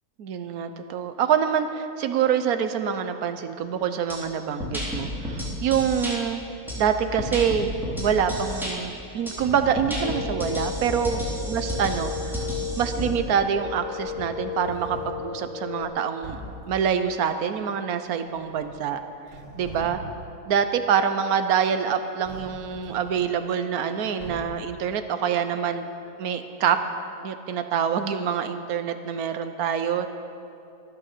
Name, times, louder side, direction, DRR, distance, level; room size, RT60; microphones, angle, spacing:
voice 1, 0.2-6.4 6.8-12.1 12.8-16.4 16.7-19.0 19.6-20.0 20.5-25.9 26.2-26.8 27.2-30.1, right 7 dB, 70° right, 9 dB, 1.2 m, -26 dB
sound 1, 4.1-4.2 4.6-6.1 6.7-8.7 9.3-9.4 9.8-13.1, equal, ahead, 3.3 m, -31 dB
sound 2, 9.4-10.0 11.6-12.3 13.5-13.6 14.0-15.2 15.8-15.9 16.2-16.7 18.3-18.9 19.2-20.3 22.2-23.2 24.2-24.7, equal, 45° right, 3.5 m, -42 dB
sound 3, 10.0-15.9, left 7 dB, 60° left, 2.5 m, -35 dB
12.5 x 11.0 x 6.7 m, 2.7 s
omnidirectional pair, 1.7 m